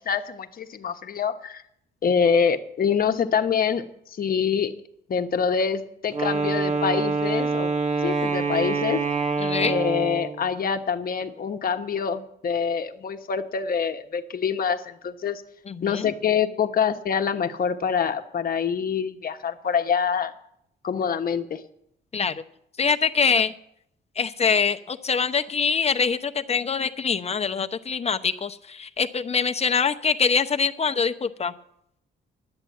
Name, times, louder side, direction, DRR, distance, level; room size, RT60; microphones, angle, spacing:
voice 1, 0.0-1.6 2.0-3.8 4.2-4.7 5.1-7.7 8.0-9.0 9.6-15.4 15.8-20.3 20.8-21.6, left 6 dB, 45° left, 7 dB, 1.1 m, -25 dB
Wind instrument woodwind instrument, 6.1-10.5, right 4 dB, 35° right, 1.4 m, -25 dB
voice 2, 9.4-9.8 15.7-16.1 22.1-22.4 22.8-23.5 24.2-31.5, left 5 dB, 30° left, 9 dB, 0.8 m, -24 dB
10.5 x 9.0 x 8.4 m, 0.74 s
cardioid pair, 90°, 20 cm